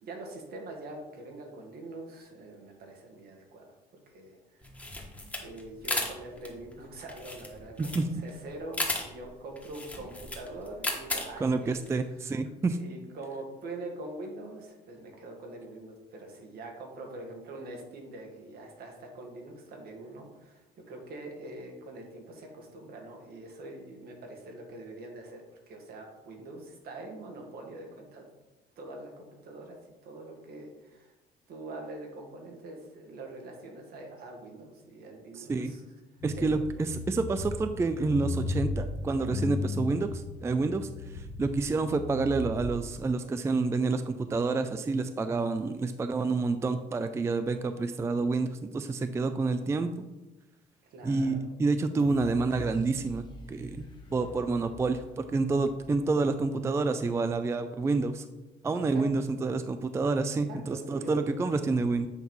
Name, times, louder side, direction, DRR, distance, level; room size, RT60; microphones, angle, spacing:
voice 1, 0.0-3.8 4.1-4.9 5.4-11.8 12.6-25.4 25.7-28.3 28.8-29.8 30.0-31.1 31.5-35.8 36.4-36.5 50.9-51.4 58.9-59.0 60.5-61.3, right 2 dB, 65° right, 2 dB, 1.7 m, -44 dB
sound 1, 4.6-12.0, left 2 dB, 10° left, 1.3 m, -35 dB
voice 2, 11.4-12.8 35.4-35.7 36.2-50.1 51.0-53.9 54.1-58.2 58.6-62.1, right 3 dB, 15° right, 9 dB, 0.3 m, -28 dB
sound 2, 36.2-43.1, left 2 dB, 65° left, 1.1 m, -36 dB
sound 3, 52.0-56.9 57.3-57.4, left 2 dB, 25° left, 1.1 m, -48 dB
8.0 x 3.0 x 5.4 m, 1.0 s
cardioid pair, 110°, 17 cm